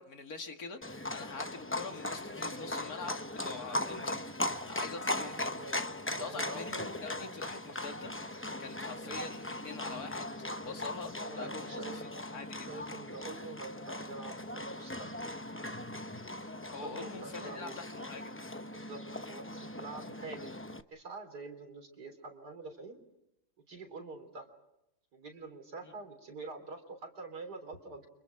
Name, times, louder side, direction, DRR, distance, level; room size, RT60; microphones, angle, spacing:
voice 1, 0.0-4.4 4.7-5.5 6.2-8.1 8.6-10.3 10.6-12.0 12.3-12.8 16.7-18.4 25.8-25.9, left 4 dB, 60° left, 5 dB, 2.3 m, -44 dB
Livestock farm animals working animals, 0.8-20.8, left 1 dB, 20° left, 0.4 m, -39 dB
voice 2, 5.4-6.7 11.2-12.0 12.7-15.1 16.8-17.8 18.7-20.6 20.9-23.0 23.7-24.5 25.1-28.1, right 3 dB, 75° right, 6 dB, 4.2 m, -46 dB
30.0 x 26.0 x 4.8 m, 0.88 s
omnidirectional pair, 1.8 m